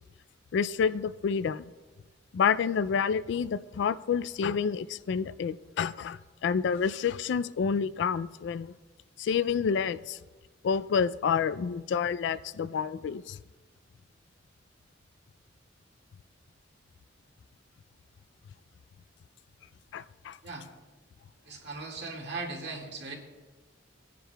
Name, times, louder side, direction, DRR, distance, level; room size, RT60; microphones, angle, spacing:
voice 1, 0.5-1.7 2.3-8.7 9.2-10.2 10.6-13.4 19.9-20.4, left 6 dB, 65° left, 15 dB, 0.3 m, -29 dB
voice 2, 21.5-23.1, right 3 dB, 65° right, -1 dB, 2.0 m, -38 dB
19.0 x 10.0 x 2.3 m, 1.2 s
head